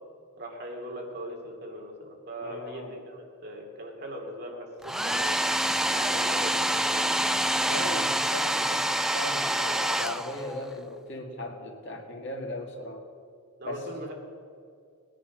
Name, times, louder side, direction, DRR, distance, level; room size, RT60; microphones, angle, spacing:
voice 1, 0.4-5.4 5.9-7.5 13.6-14.1, right 1 dB, 50° right, 1 dB, 2.5 m, -40 dB
voice 2, 2.4-3.0 7.6-13.0 13.6-14.0, left 1 dB, 55° left, 2 dB, 1.9 m, -37 dB
Domestic sounds home sounds, 4.8-10.7, right 1 dB, ahead, 0.3 m, -27 dB
19.5 x 10.0 x 6.2 m, 2.3 s
head